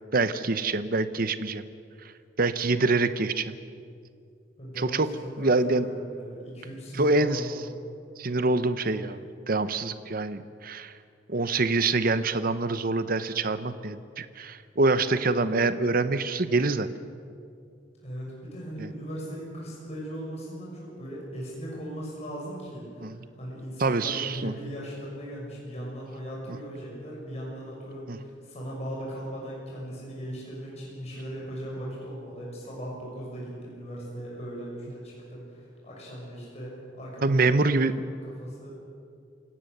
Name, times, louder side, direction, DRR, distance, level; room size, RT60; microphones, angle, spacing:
voice 1, 0.1-1.7 2.4-3.6 4.8-5.1 5.4-5.9 7.0-7.5 8.2-10.9 11.3-16.9 18.8-18.9 23.0-23.2 23.8-24.5 28.1-28.2 37.2-37.9, right 3 dB, 50° right, 12 dB, 0.9 m, -25 dB
voice 2, 4.6-5.5 5.9-7.7 18.0-37.4 38.1-38.7, equal, 35° left, -4 dB, 6.5 m, -38 dB
28.0 x 17.5 x 6.8 m, 2.4 s
head